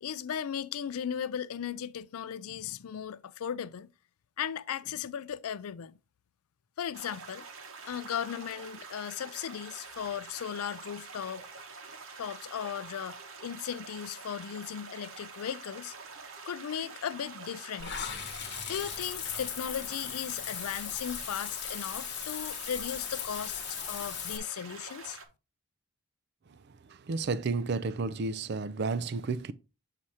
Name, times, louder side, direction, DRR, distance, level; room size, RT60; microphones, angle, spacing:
voice 1, 0.0-3.9 4.4-6.0 6.8-7.5 7.8-11.5 12.2-15.9 16.5-18.1 18.7-23.6 23.9-25.2, left 8 dB, 80° left, 0.4 m, -37 dB
sound 1, 6.9-25.2, right 4 dB, 65° right, 1.0 m, -47 dB
Water / Bathtub (filling or washing), 17.8-24.4, left 9 dB, 50° left, 1.0 m, -38 dB
voice 2, 26.9-29.5, right 4 dB, 45° right, 0.4 m, -32 dB
7.4 x 2.8 x 4.8 m
head